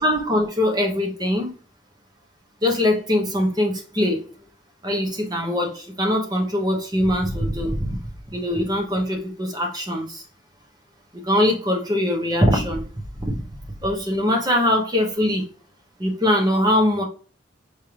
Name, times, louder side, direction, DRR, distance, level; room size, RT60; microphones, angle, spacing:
voice 1, 0.0-1.6 2.6-4.3 4.8-8.0 8.3-10.2 11.1-12.9 13.2-13.5 13.8-15.4 16.0-17.0, left 1 dB, 20° right, 1 dB, 1.1 m, -22 dB
4.9 x 3.4 x 2.9 m, 0.39 s
head